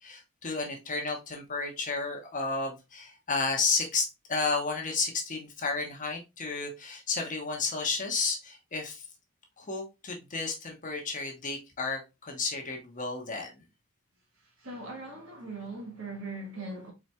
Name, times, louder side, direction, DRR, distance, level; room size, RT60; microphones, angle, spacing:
voice 1, 0.0-9.0 9.6-13.5, left 4 dB, 35° left, 1.0 m, -32 dB
voice 2, 14.6-16.9, right 2 dB, 65° right, 1.4 m, -40 dB
4.2 x 4.0 x 2.3 m
head